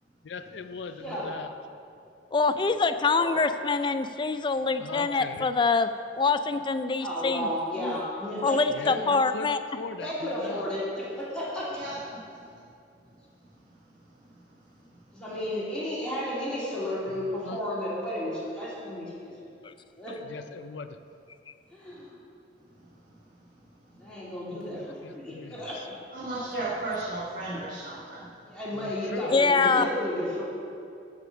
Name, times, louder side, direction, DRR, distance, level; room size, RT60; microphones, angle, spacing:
voice 1, 0.2-1.5 4.8-5.5 8.7-10.7 17.5-17.6 20.3-21.0 24.6-25.7 28.7-29.3, left 4 dB, 80° left, 10 dB, 0.5 m, -40 dB
voice 2, 0.9-1.4 3.1-3.3 7.0-8.9 10.0-11.8 12.3-12.5 15.1-19.5 19.9-20.5 21.7-22.1 24.0-25.9 28.4-30.4, equal, 5° left, -9 dB, 2.9 m, -33 dB
voice 3, 2.3-7.5 7.8-8.0 8.4-9.6 19.6-19.7 29.3-29.9, left 4 dB, 25° left, 10 dB, 0.4 m, -25 dB
voice 4, 11.7-12.0 26.1-28.3, right 2 dB, 50° right, -8 dB, 1.9 m, -34 dB
13.5 x 5.0 x 6.2 m, 2.5 s
head